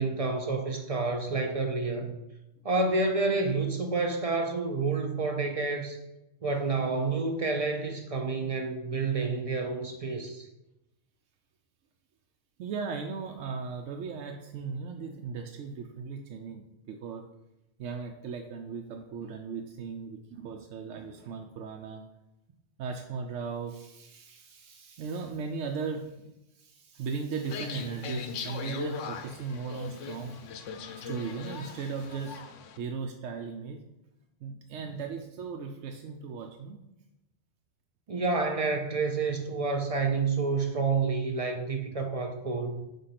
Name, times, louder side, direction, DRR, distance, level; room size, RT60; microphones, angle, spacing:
voice 1, 0.0-2.1 2.6-6.0 6.4-10.5 38.1-42.8, right 3 dB, 45° right, 5 dB, 0.5 m, -29 dB
voice 2, 12.6-17.2 17.8-22.0 22.8-30.5 30.9-32.4 32.8-33.8 34.4-36.8, right 5 dB, 80° right, 3 dB, 0.9 m, -37 dB
sound 1, 27.4-32.8, left 5 dB, 80° left, 1.0 m, -40 dB
5.3 x 3.7 x 5.7 m, 0.92 s
omnidirectional pair, 1.3 m